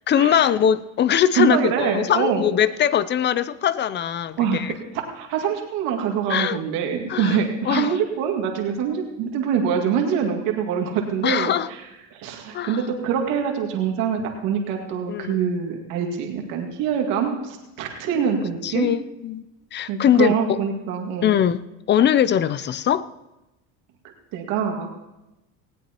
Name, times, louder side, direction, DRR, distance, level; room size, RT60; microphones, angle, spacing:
voice 1, 0.1-4.7 6.3-6.6 7.1-7.4 7.6-8.0 11.2-11.7 12.5-12.8 15.1-15.4 18.1-18.4 18.6-19.5 19.7-20.6 21.2-23.1, left 9 dB, 35° left, 0.5 m, -21 dB
voice 2, 1.3-2.4 4.4-4.7 5.1-11.5 12.1-18.9 19.9-21.3 24.3-24.9, right 7 dB, 75° right, 2.2 m, -24 dB
19.0 x 16.5 x 3.0 m
supercardioid pair, 115°, 34 cm